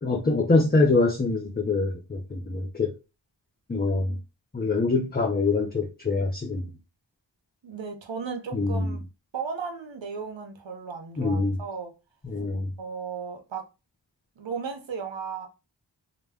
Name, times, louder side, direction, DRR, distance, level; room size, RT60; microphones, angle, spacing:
voice 1, 0.0-2.9 3.7-4.2 4.5-6.7 8.5-9.0 11.2-11.6 12.2-12.7, left 3 dB, 20° left, 0.5 m, -24 dB
voice 2, 7.6-9.0 9.3-11.9 12.8-13.6 14.4-15.5, right 6 dB, 75° right, 0.7 m, -35 dB
2.2 x 2.1 x 3.3 m
wide cardioid pair, 40°, 45 cm